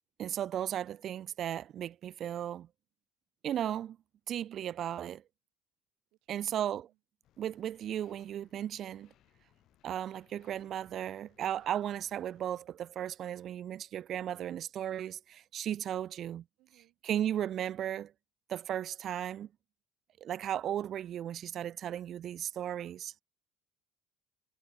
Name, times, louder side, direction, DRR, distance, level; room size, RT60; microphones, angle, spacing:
voice 1, 0.2-2.7 3.4-4.0 4.3-5.2 6.3-6.9 7.4-9.1 9.8-16.4 17.0-18.1 18.5-19.5 20.2-23.1, right 10 dB, 45° right, 0.4 m, -35 dB
voice 2, 6.1-7.0 16.6-17.0, right 19 dB, 70° right, 6.5 m, -69 dB
sound 1, 7.2-12.5, left 13 dB, 55° left, 6.6 m, -68 dB
cardioid pair, 130°, 0 cm